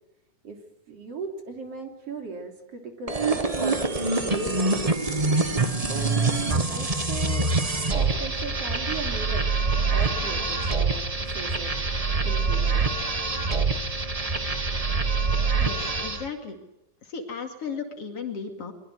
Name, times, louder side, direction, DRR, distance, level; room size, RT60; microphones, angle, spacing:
voice 1, 0.9-5.0 5.7-7.5 7.9-9.5 9.9-11.7 12.2-13.0, right 4 dB, 55° right, 3 dB, 4.1 m, -37 dB
sound 1, 3.1-16.3, right 3 dB, 75° right, 0.3 m, -25 dB
voice 2, 15.6-16.6 17.1-18.7, left 5 dB, 55° left, 4 dB, 3.2 m, -35 dB
23.5 x 22.0 x 7.9 m, 0.92 s
omnidirectional pair, 3.4 m